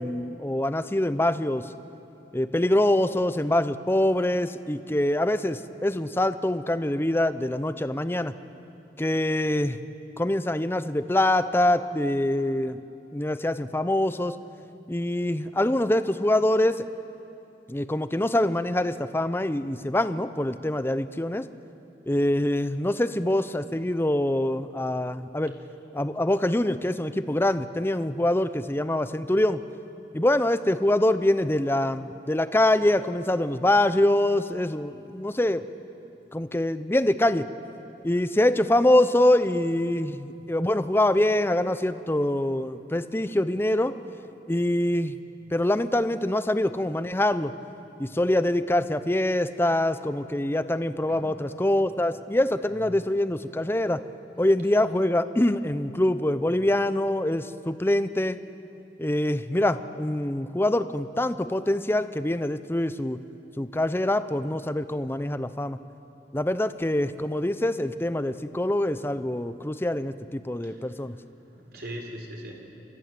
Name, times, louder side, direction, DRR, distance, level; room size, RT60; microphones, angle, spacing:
voice 1, 0.0-1.7 2.3-8.3 9.0-9.8 10.2-12.8 13.1-14.4 14.9-16.8 17.7-21.5 22.1-25.5 25.9-29.6 30.1-35.6 36.3-37.4 38.0-43.9 44.5-45.2 45.5-47.5 48.0-54.0 54.4-58.4 59.0-63.2 63.6-65.8 66.3-71.2, left 1 dB, 15° left, 12 dB, 0.6 m, -24 dB
voice 2, 70.6-72.5, equal, 60° right, 1 dB, 3.9 m, -41 dB
29.0 x 14.0 x 7.7 m, 2.8 s
head